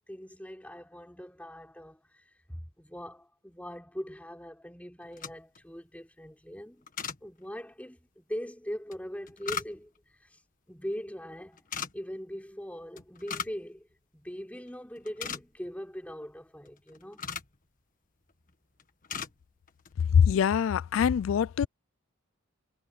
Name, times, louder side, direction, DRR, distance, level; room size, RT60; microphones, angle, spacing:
voice 1, 0.1-6.8 7.2-9.9 10.2-10.4 10.7-11.7 11.9-13.9 14.1-17.3, equal, 5° left, 3.8 m, -41 dB
sound 1, 5.0-5.6 6.9-7.2 8.9-10.0 11.6-11.9 13.0-13.6 13.9-14.0 14.5-14.7 15.0-15.7 16.6-17.6 18.3-18.5 18.8-19.3 19.7-19.9, left 7 dB, 40° left, 1.6 m, -38 dB
voice 2, 20.1-21.7, left 7 dB, 75° left, 0.3 m, -23 dB
head